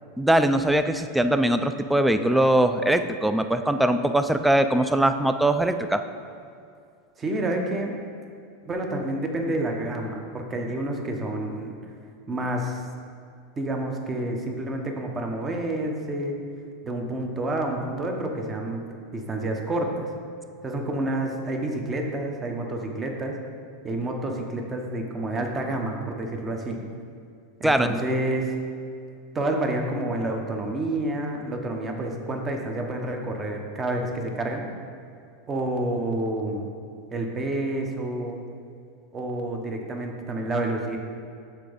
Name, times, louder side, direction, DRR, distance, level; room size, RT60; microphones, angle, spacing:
voice 1, 0.2-6.0 27.6-27.9, right 1 dB, 5° right, 9 dB, 0.3 m, -21 dB
voice 2, 7.2-7.9 8.6-11.8 12.3-12.8 13.6-16.4 16.8-18.8 19.1-20.1 20.6-23.4 23.8-26.8 27.6-28.5 29.3-34.7 35.5-36.7 37.1-38.4 39.1-41.0, right 1 dB, 20° right, 2 dB, 0.8 m, -29 dB
7.4 x 3.4 x 5.1 m, 2.4 s
supercardioid pair, 130°, 0 cm